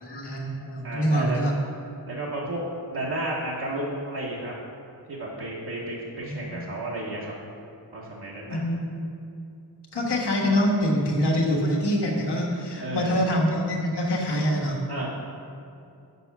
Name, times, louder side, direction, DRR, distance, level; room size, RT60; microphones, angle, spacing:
voice 1, 0.0-1.5 6.2-6.6 8.5-9.0 9.9-14.8, equal, 85° left, -2 dB, 1.3 m, -25 dB
voice 2, 0.8-1.5 2.1-2.6 2.9-4.5 5.1-7.3 7.9-8.6 12.8-13.2 14.9-15.1, right 1 dB, 70° right, -6 dB, 1.1 m, -32 dB
6.8 x 5.7 x 5.8 m, 2.6 s
wide cardioid pair, 105°, 39 cm